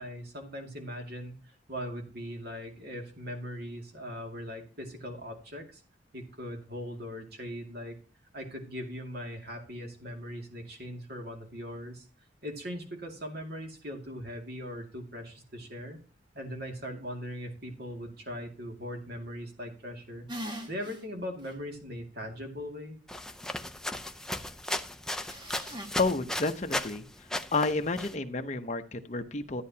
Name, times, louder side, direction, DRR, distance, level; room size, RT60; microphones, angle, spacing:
voice 1, 0.0-5.8 6.1-8.0 8.3-12.1 12.4-16.0 16.3-20.3 20.7-23.0, equal, 55° right, 3 dB, 2.3 m, -40 dB
sound 1, 20.3-21.0 21.4-21.5 25.2-25.9, equal, 25° right, 1.4 m, -40 dB
sound 2, 23.1-27.0 27.3-28.1, left 1 dB, 5° left, 0.5 m, -35 dB
voice 2, 26.0-27.0 27.5-29.6, left 3 dB, 35° left, 6 dB, 0.8 m, -30 dB
13.0 x 9.5 x 2.8 m, 0.37 s
head